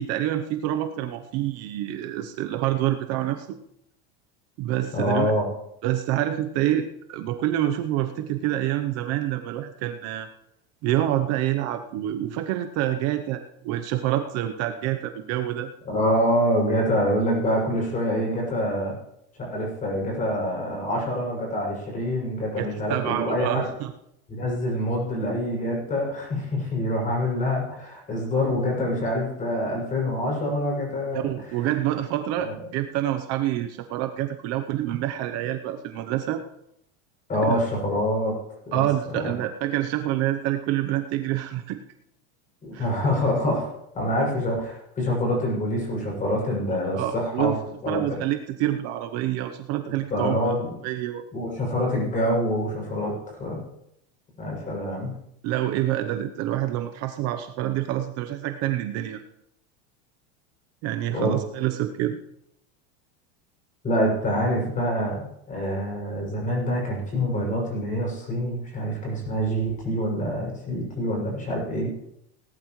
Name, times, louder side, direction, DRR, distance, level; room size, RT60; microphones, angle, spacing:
voice 1, 0.0-3.6 4.6-5.3 5.8-10.3 10.8-15.7 22.6-23.9 31.1-36.4 37.4-37.6 38.7-41.8 42.7-42.9 46.7-47.6 47.9-50.5 50.8-51.2 55.4-59.2 60.8-62.2, right 13 dB, 45° right, 7 dB, 0.9 m, -27 dB
voice 2, 4.9-5.5 15.8-18.9 19.4-23.6 24.3-31.7 32.4-32.5 37.3-38.3 38.6-39.3 42.6-43.7 43.9-47.6 47.8-48.2 49.9-50.7 51.3-53.6 54.4-55.1 61.1-61.3 63.8-71.9, equal, 20° left, -2 dB, 6.7 m, -26 dB
18.5 x 12.0 x 3.2 m, 0.77 s
supercardioid pair, 145°, 35 cm